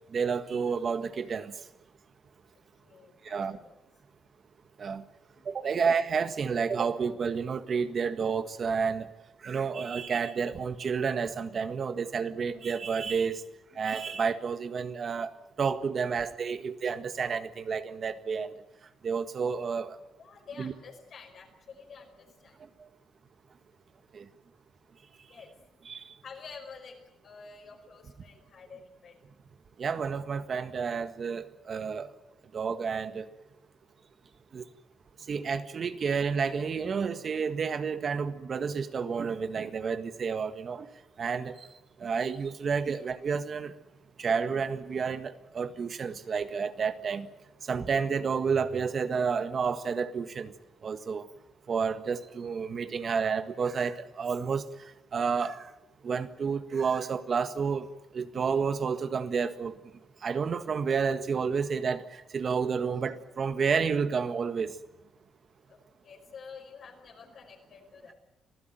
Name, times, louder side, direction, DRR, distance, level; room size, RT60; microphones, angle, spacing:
voice 1, 0.1-1.5 3.2-3.6 4.8-5.0 5.4-9.1 9.4-13.4 13.7-18.5 19.0-20.0 20.6-20.7 24.1-24.2 25.8-26.0 29.8-32.1 32.5-33.3 34.5-34.6 35.3-40.9 41.2-41.7 42.0-43.8 44.2-47.3 47.7-50.5 50.8-51.3 51.7-54.6 55.1-55.7 56.0-57.9 58.1-59.8 60.2-64.7, right 5 dB, 45° right, 1.7 m, -30 dB
voice 2, 2.8-3.7 5.3-5.8 13.7-13.8 16.5-16.6 20.2-22.6 25.3-25.8 26.2-29.2 65.7-68.1, left 5 dB, 60° left, 5.3 m, -49 dB
26.0 x 15.5 x 9.2 m
cardioid pair, 90°, 0 cm